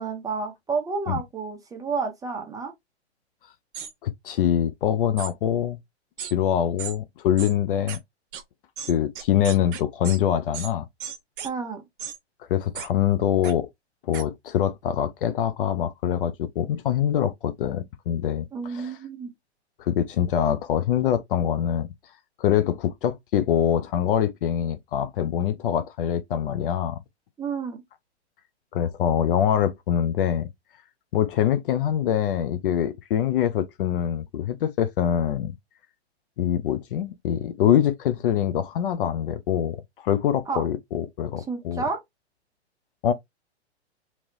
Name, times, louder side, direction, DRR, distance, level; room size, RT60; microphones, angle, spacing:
voice 1, 0.0-2.7 11.4-11.8 18.5-19.3 27.4-27.8 40.5-40.6 41.5-42.0, right 5 dB, 10° right, 0.8 m, -30 dB
sound 1, 3.7-3.9 5.2-5.3 6.2-6.3 6.8-6.9 7.4-7.5 7.9-8.0 8.3-8.4 8.8-10.2 10.5-10.7 11.0-11.5 12.0-12.2 12.7-12.9 13.4-13.5 14.1-14.2, right 8 dB, 50° right, 0.9 m, -35 dB
voice 2, 4.0-5.8 6.2-8.0 8.9-10.9 12.5-13.7 14.0-18.9 19.8-21.9 22.4-27.0 28.7-30.5 31.1-35.6 36.4-41.8 43.0-43.1, left 10 dB, 50° left, 0.5 m, -24 dB
3.1 x 2.9 x 2.5 m
hypercardioid pair, 115°, 34 cm